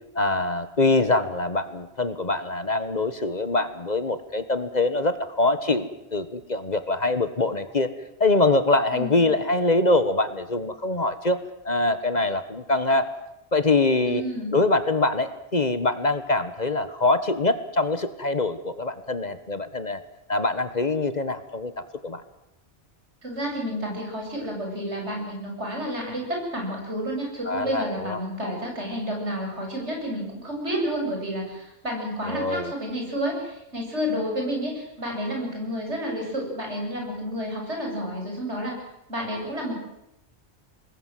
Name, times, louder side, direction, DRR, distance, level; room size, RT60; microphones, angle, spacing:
voice 1, 0.1-7.9 8.2-13.1 13.5-14.2 14.5-20.0 20.3-21.7 22.0-22.2 27.5-28.2 32.3-32.7, left 2 dB, 40° left, 11 dB, 1.4 m, -24 dB
voice 2, 8.9-9.3 14.1-14.6 23.2-38.7 39.1-39.8, equal, 75° right, 0 dB, 8.1 m, -30 dB
26.0 x 20.5 x 7.7 m, 0.87 s
omnidirectional pair, 1.2 m